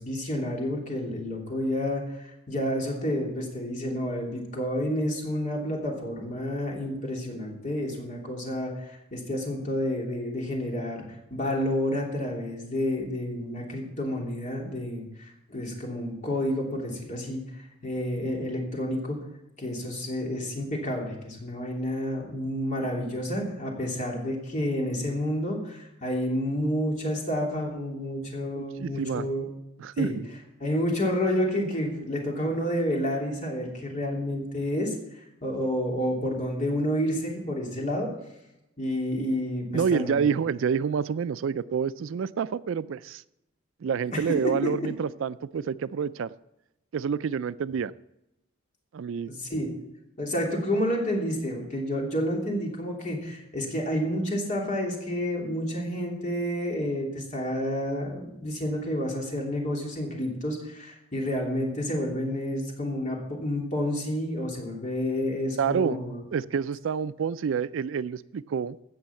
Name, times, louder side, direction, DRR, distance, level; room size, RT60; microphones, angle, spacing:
voice 1, 0.0-11.0 11.3-17.4 17.8-19.2 19.6-29.4 30.0-30.1 30.6-34.9 35.4-38.1 38.8-39.6 39.9-40.3 44.1-44.7 49.3-49.7 50.2-66.2, equal, 35° left, -1 dB, 3.1 m, -29 dB
voice 2, 28.6-29.3 29.8-30.1 39.7-43.2 43.8-46.3 46.9-47.9 48.9-49.3 49.5-49.6 65.6-66.0 66.3-68.8, right 6 dB, 65° right, 16 dB, 0.3 m, -28 dB
16.5 x 6.4 x 7.0 m, 0.90 s
head